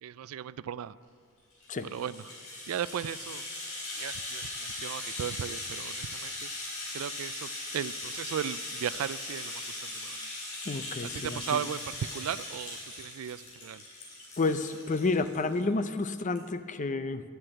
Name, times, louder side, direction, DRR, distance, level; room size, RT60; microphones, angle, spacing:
voice 1, 0.0-0.9 1.8-2.4 2.7-3.4 4.0-6.5 6.9-10.3 11.0-13.8, right 9 dB, 70° right, 17 dB, 0.3 m, -36 dB
Rattle (instrument), 1.5-15.6 16.0-16.1 16.3-16.5, left 2 dB, 85° left, 4.1 m, -39 dB
voice 2, 10.7-11.6 14.4-17.2, left 3 dB, 35° left, 11 dB, 0.5 m, -30 dB
11.0 x 7.7 x 8.9 m, 2.2 s
head